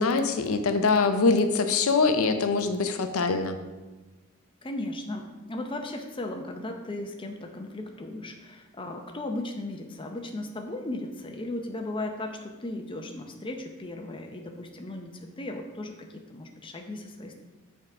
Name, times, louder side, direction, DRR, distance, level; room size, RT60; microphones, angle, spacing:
voice 1, 0.0-3.6, left 4 dB, 75° left, 8 dB, 0.6 m, -23 dB
voice 2, 4.6-17.4, left 2 dB, 25° left, 4 dB, 0.6 m, -36 dB
6.8 x 3.7 x 4.8 m, 1.2 s
head